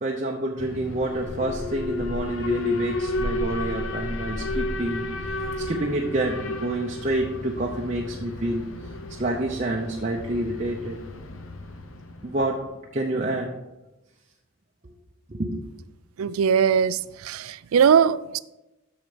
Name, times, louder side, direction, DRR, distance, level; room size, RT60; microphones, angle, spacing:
voice 1, 0.0-5.1 5.6-8.6 9.2-11.0 12.2-12.6 12.9-13.5 15.3-15.6, right 1 dB, 35° right, -1 dB, 0.7 m, -28 dB
Alarm, 0.6-12.6, left 2 dB, 75° left, 0.8 m, -32 dB
voice 2, 16.2-18.4, right 7 dB, 90° right, 17 dB, 0.4 m, -20 dB
7.5 x 6.5 x 5.0 m, 1.0 s
head